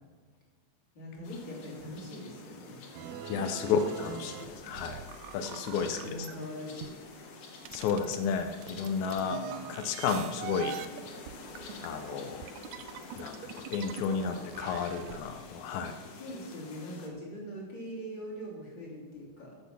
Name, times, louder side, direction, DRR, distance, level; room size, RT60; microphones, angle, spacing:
voice 1, 0.9-2.8 4.0-4.2 5.7-6.9 9.2-10.0 16.1-19.6, equal, 40° left, -5 dB, 3.8 m, -42 dB
sound 1, 1.2-17.1, left 4 dB, 60° left, 2.2 m, -48 dB
sound 2, 2.9-6.4 6.8-15.2, right 9 dB, 85° right, 2.0 m, -44 dB
voice 2, 3.3-4.3 4.6-5.0 5.3-6.3 7.7-9.4 9.7-10.8 11.8-12.4 13.2-16.0, left 6 dB, 85° left, 7 dB, 2.1 m, -32 dB
13.5 x 7.7 x 6.0 m, 1.5 s
omnidirectional pair, 3.3 m